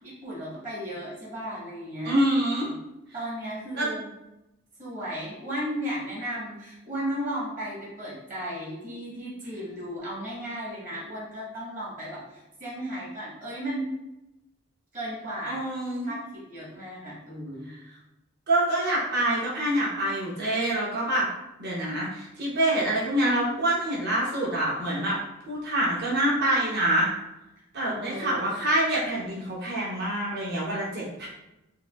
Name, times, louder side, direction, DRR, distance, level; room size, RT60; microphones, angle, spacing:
voice 1, 0.0-2.2 2.6-2.8 3.1-4.1 4.8-13.9 14.9-15.6 16.0-17.7 27.8-28.5, equal, 40° right, -6 dB, 1.4 m, -35 dB
voice 2, 2.0-2.7 3.7-3.9 15.5-16.1 18.5-21.3 21.6-25.2 25.5-27.1 27.7-31.3, right 1 dB, 55° right, -6 dB, 1.0 m, -26 dB
4.6 x 2.7 x 2.4 m, 0.94 s
head